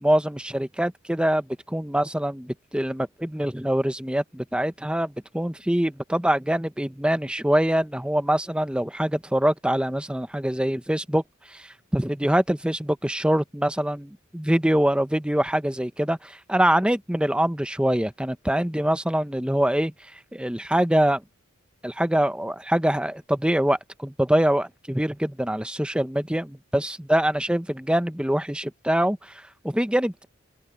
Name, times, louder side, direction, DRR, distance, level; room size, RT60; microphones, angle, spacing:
voice 1, 0.0-11.2 11.5-14.1 14.3-19.9 20.3-21.2 21.8-30.3, right 1 dB, 5° right, 0.8 m, -24 dB
open air
head